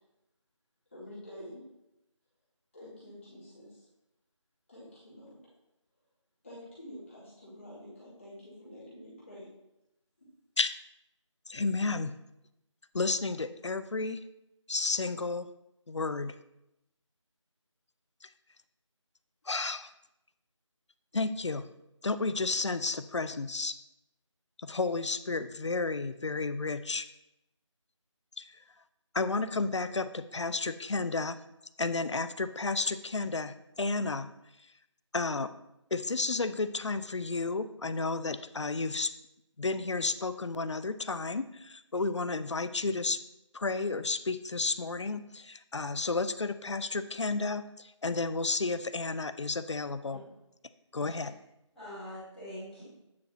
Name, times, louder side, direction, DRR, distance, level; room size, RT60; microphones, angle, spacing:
voice 1, 0.9-1.6 2.7-3.9 4.7-5.4 6.4-9.5, left 1 dB, 25° left, -11 dB, 2.4 m, -48 dB
voice 2, 11.5-12.1 12.9-14.2 14.7-15.5 15.9-16.4 18.2-18.3 19.5-19.9 21.1-21.7 22.0-23.8 24.6-27.1 28.4-28.5 29.1-31.4 31.8-34.3 35.1-35.5 35.9-39.1 39.6-43.2 43.5-50.2 50.9-51.3, left 3 dB, 65° left, 13 dB, 0.5 m, -32 dB
voice 3, 51.0-51.3 51.7-52.8, left 1 dB, ahead, -21 dB, 1.6 m, -44 dB
9.3 x 4.7 x 2.8 m, 0.89 s
figure-of-eight pair, 175°, 16 cm